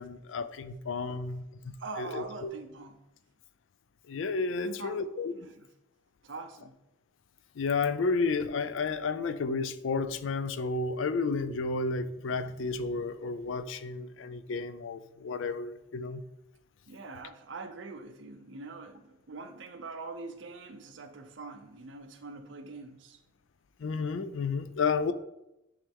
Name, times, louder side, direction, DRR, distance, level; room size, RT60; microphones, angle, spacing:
voice 1, 0.0-2.5 4.1-5.3 7.6-16.2 23.8-25.1, left 4 dB, 90° left, 12 dB, 0.4 m, -32 dB
voice 2, 1.8-3.0 4.6-5.0 5.3-5.7 6.2-6.7 16.9-23.2, right 3 dB, 75° right, 7 dB, 0.7 m, -43 dB
9.7 x 3.3 x 3.6 m, 0.91 s
head